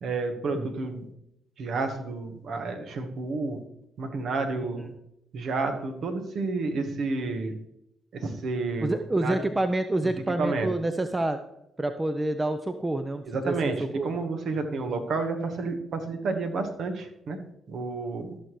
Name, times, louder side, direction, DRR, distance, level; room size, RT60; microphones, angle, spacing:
voice 1, 0.0-1.1 1.6-3.6 4.0-4.9 5.3-7.6 8.1-9.4 10.0-10.1 10.4-10.7 13.2-17.4 17.7-18.3, right 3 dB, 60° right, 6 dB, 1.3 m, -30 dB
voice 2, 8.8-11.4 11.8-14.1, right 2 dB, 20° right, 9 dB, 0.7 m, -28 dB
14.0 x 6.5 x 3.2 m, 0.82 s
hypercardioid pair, 50°, 0 cm